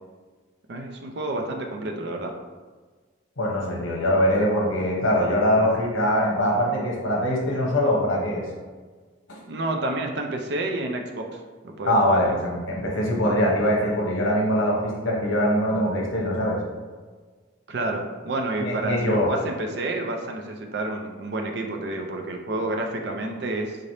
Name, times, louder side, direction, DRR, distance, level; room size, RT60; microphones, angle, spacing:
voice 1, 0.7-2.3 9.5-12.4 17.7-23.8, right 2 dB, 55° right, 3 dB, 0.4 m, -29 dB
voice 2, 3.4-8.4 9.3-9.4 11.9-16.6 18.6-19.3, equal, 75° left, -2 dB, 0.9 m, -22 dB
3.8 x 3.2 x 2.7 m, 1.4 s
head